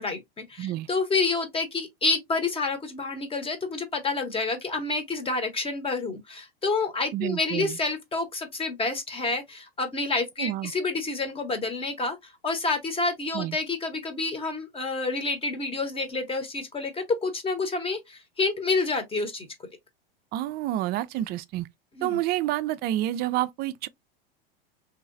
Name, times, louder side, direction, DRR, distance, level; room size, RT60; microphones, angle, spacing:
voice 1, 0.0-19.5 22.0-22.2, left 3 dB, 20° left, 0.9 m, -29 dB
voice 2, 7.1-7.8 10.4-10.7 13.3-13.6 20.3-21.7 22.0-23.9, right 14 dB, 35° right, 0.4 m, -28 dB
3.0 x 2.8 x 2.5 m
hypercardioid pair, 100°, 29 cm